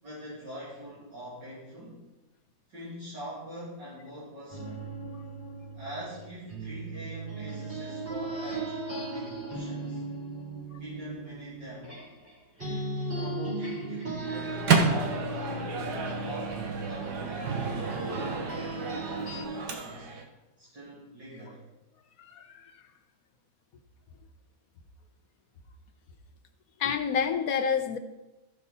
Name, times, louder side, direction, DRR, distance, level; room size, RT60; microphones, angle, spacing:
voice 1, 0.0-2.0 2.7-4.9 5.7-10.0 10.8-12.0 13.0-15.7 16.2-20.1 20.6-21.6, right 1 dB, 90° right, -9 dB, 3.5 m, -43 dB
sound 1, 4.5-12.3 12.6-19.4, right 2 dB, 30° right, 4.0 m, -37 dB
Microwave oven, 14.2-20.2, right 4 dB, 70° right, 1.7 m, -30 dB
voice 2, 22.2-22.6 26.8-28.0, left 7 dB, 60° left, 7 dB, 1.2 m, -28 dB
14.5 x 5.7 x 4.2 m, 1.0 s
omnidirectional pair, 1.9 m